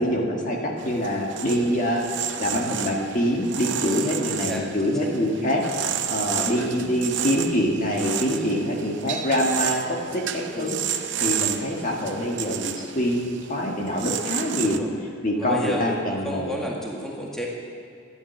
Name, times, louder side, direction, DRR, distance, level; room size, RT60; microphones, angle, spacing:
voice 1, 0.0-10.8 11.2-14.8 15.2-16.5, equal, 40° left, -1 dB, 1.9 m, -25 dB
sound 1, 0.8-14.8, right 9 dB, 65° right, 0.6 m, -31 dB
voice 2, 3.8-4.2 4.5-4.6 5.0-5.1 6.3-6.6 8.3-8.5 10.5-10.8 14.6-14.9 15.4-17.5, equal, 5° left, -3 dB, 1.9 m, -32 dB
12.5 x 11.0 x 7.2 m, 2.5 s
head